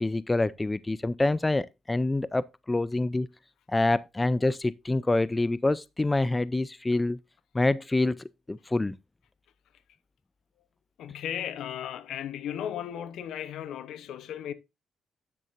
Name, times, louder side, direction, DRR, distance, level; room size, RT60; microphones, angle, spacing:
voice 1, 0.0-3.3 3.7-7.2 7.5-9.0, left 2 dB, 20° left, 0.4 m, -26 dB
voice 2, 11.0-14.5, left 10 dB, 75° left, 0.8 m, -35 dB
9.3 x 7.7 x 2.5 m
supercardioid pair, 55°, 0 cm